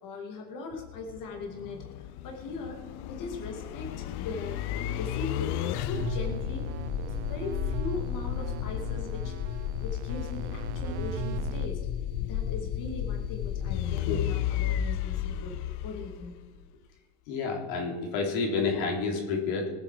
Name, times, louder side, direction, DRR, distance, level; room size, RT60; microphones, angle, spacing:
voice 1, 0.0-2.8 3.1-4.6 4.9-6.7 7.2-11.8 12.2-15.6 15.8-16.4, left 3 dB, 45° left, 1 dB, 2.4 m, -40 dB
sound 1, 0.7-16.7, left 11 dB, 60° left, 0.8 m, -33 dB
sound 2, 5.9-11.7, right 13 dB, 85° right, 0.9 m, -39 dB
voice 2, 17.3-19.7, left 4 dB, 80° left, 0 dB, 3.6 m, -29 dB
19.5 x 9.3 x 4.9 m, 1.3 s
cardioid pair, 135°, 46 cm